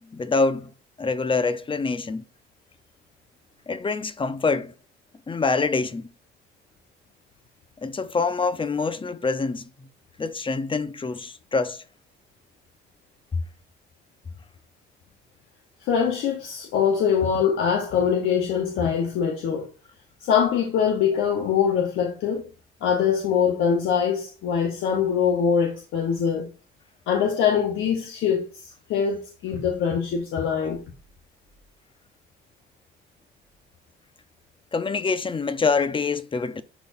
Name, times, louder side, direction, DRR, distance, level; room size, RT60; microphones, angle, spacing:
voice 1, 0.1-0.7 1.0-2.2 3.7-4.7 5.3-6.1 7.8-9.7 10.2-11.8 34.7-36.6, left 4 dB, 25° left, 0.7 m, -25 dB
voice 2, 15.8-19.7 20.2-22.4 22.8-26.5 27.1-30.8, left 7 dB, 85° left, 1.2 m, -23 dB
11.0 x 4.0 x 2.6 m
cardioid pair, 90°, 20 cm